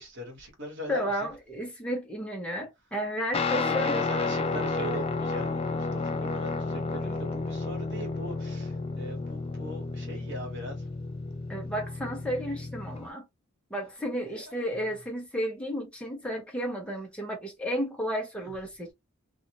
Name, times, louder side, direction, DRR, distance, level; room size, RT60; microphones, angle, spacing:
voice 1, 0.0-1.1 3.5-10.8 12.4-12.6 12.8-13.0 14.3-14.6 18.4-18.5, equal, 60° right, 1.3 m, -40 dB
voice 2, 0.9-3.9 11.5-13.2 13.7-18.9, equal, 5° left, 0.9 m, -32 dB
Guitar, 3.3-13.1, left 3 dB, 30° left, 0.4 m, -31 dB
2.6 x 2.4 x 2.9 m
head